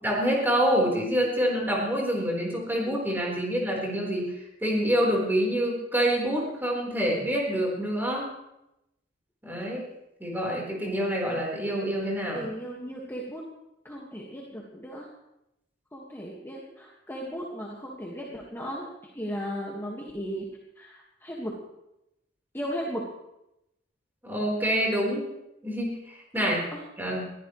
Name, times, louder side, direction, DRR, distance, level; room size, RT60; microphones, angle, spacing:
voice 1, 0.0-8.3 9.4-9.8 10.2-12.4 24.2-25.2 25.6-26.6 27.0-27.3, equal, 10° right, -3 dB, 4.3 m, -27 dB
voice 2, 12.3-13.4 13.8-15.1 15.9-18.9 19.1-20.5 20.8-21.5 22.5-23.0 26.4-26.8, equal, 10° left, -3 dB, 1.8 m, -36 dB
22.0 x 15.0 x 3.2 m, 0.87 s
head